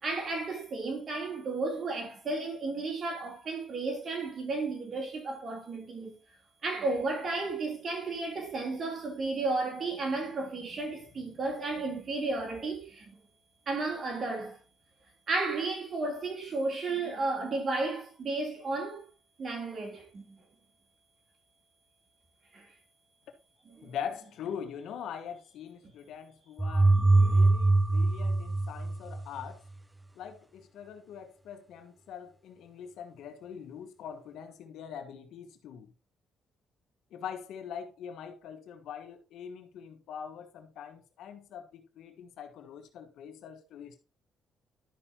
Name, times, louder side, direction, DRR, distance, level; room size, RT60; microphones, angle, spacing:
voice 1, 0.0-6.2 6.6-13.2 13.7-14.6 15.3-19.1 19.4-20.4 22.5-22.7 23.6-23.9 26.9-27.5, right 3 dB, 45° right, 3.2 m, -33 dB
voice 2, 23.8-29.6 30.1-35.9 37.1-44.0, left 8 dB, 80° left, 1.3 m, -43 dB
sound 1, 26.6-29.5, right 2 dB, 10° right, 0.5 m, -23 dB
12.0 x 5.6 x 2.9 m
cardioid pair, 90°, 0 cm